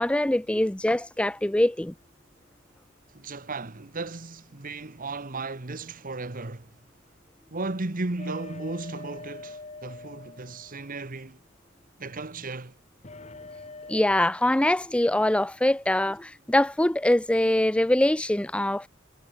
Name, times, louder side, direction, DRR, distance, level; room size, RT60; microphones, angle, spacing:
voice 1, 0.0-1.9 13.9-18.9, left 1 dB, 5° left, 0.4 m, -23 dB
voice 2, 3.1-6.7 7.5-11.4 12.0-12.8, right 3 dB, 40° right, 1.3 m, -35 dB
sound 1, 8.2-11.2 13.0-14.1, left 3 dB, 30° left, 2.6 m, -44 dB
head